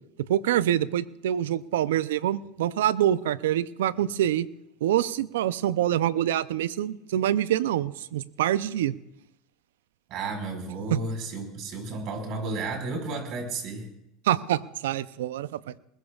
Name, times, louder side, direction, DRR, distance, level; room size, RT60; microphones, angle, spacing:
voice 1, 0.3-4.5 4.8-8.9 10.9-11.0 14.3-15.7, right 12 dB, 80° right, 16 dB, 0.6 m, -25 dB
voice 2, 10.1-13.9, right 3 dB, 55° right, 3 dB, 5.1 m, -32 dB
21.5 x 21.0 x 2.4 m, 0.81 s
hypercardioid pair, 95°, 0 cm